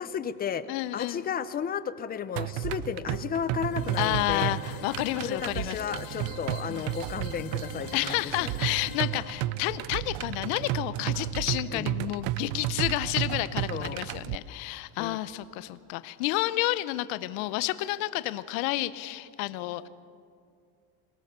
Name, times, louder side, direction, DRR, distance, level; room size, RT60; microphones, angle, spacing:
voice 1, 0.0-0.7 0.9-4.5 5.2-8.5 11.7-11.9 13.7-14.0 15.0-15.2, left 7 dB, 20° left, 14 dB, 0.5 m, -33 dB
voice 2, 0.7-1.2 4.0-5.8 6.1-6.2 6.7-6.9 7.9-19.9, left 17 dB, 75° left, 14 dB, 0.8 m, -30 dB
sound 1, 2.4-14.4, right 14 dB, 55° right, 0.6 m, -33 dB
sound 2, 3.7-11.5, left 10 dB, 55° left, 1.3 m, -46 dB
23.0 x 18.0 x 6.8 m, 2.3 s
cardioid pair, 150°, 43 cm